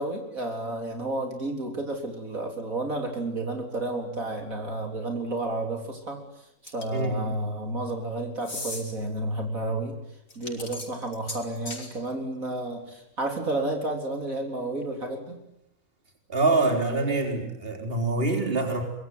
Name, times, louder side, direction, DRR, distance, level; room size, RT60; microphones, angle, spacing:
voice 1, 0.0-6.2 6.6-9.9 10.4-15.4, right 2 dB, 65° right, 3 dB, 4.2 m, -31 dB
sound 1, 6.7-7.1 8.4-8.8 10.3-11.9, left 2 dB, 60° left, 4.5 m, -37 dB
voice 2, 16.3-18.8, right 3 dB, 40° right, 4 dB, 4.2 m, -25 dB
25.0 x 23.0 x 9.4 m, 0.79 s
omnidirectional pair, 1.5 m